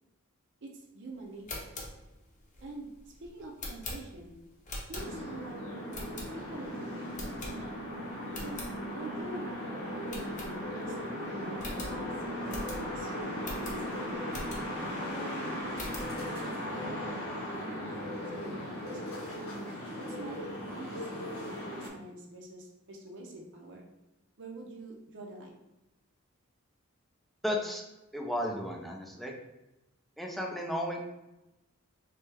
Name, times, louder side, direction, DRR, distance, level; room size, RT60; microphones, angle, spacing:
voice 1, 0.6-1.7 2.6-2.9 3.2-4.4 4.9-7.3 8.4-8.6 8.9-12.1 12.4-14.4 15.1-16.0 16.4-17.3 17.6-19.3 20.1-20.4 20.7-23.9 24.4-25.6, right 2 dB, 60° right, -1 dB, 0.6 m, -46 dB
sound 1, 1.3-5.4 5.9-6.7 7.1-7.9 8.2-8.7 9.2-9.3 9.5-9.6 10.1-11.0 11.2-11.3 11.6-14.9 15.3-16.2, left 1 dB, 35° left, 0.9 m, -43 dB
sound 2, 4.9-21.9, equal, 85° left, 1.4 m, -37 dB
voice 2, 27.4-27.8 28.1-29.3 30.2-31.0, equal, ahead, 0 dB, 0.5 m, -34 dB
3.3 x 3.3 x 3.4 m, 0.96 s
head